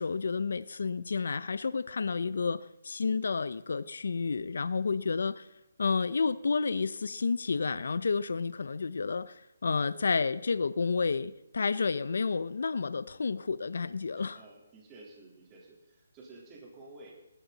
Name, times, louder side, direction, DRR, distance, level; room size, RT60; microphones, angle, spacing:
voice 1, 0.0-5.5 5.8-14.4, left 4 dB, 70° left, 0.7 m, -30 dB
voice 2, 14.1-17.1, right 2 dB, 20° right, 3.6 m, -52 dB
18.5 x 12.0 x 4.1 m
hypercardioid pair, 160°, 0 cm